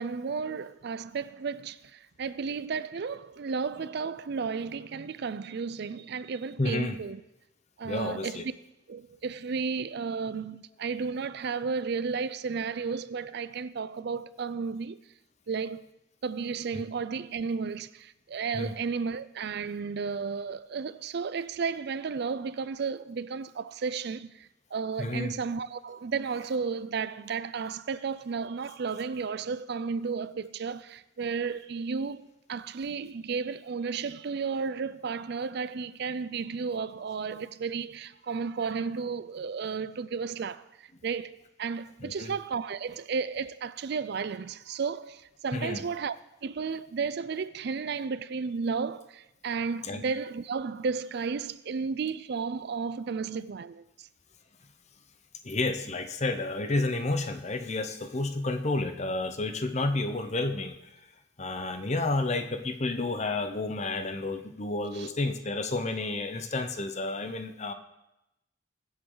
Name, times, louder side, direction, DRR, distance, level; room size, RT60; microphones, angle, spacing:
voice 1, 0.0-7.2 7.8-8.5 8.9-15.0 15.5-15.8 16.2-46.2 46.4-54.1 65.0-65.1, right 5 dB, 55° right, 0.4 m, -33 dB
voice 2, 6.6-7.0 7.8-8.4 16.7-16.8 18.5-18.7 25.0-25.3 42.0-42.3 45.5-45.8 49.8-50.0 55.4-60.9 61.4-67.7, left 2 dB, 35° left, 0.8 m, -31 dB
21.5 x 8.0 x 3.9 m
head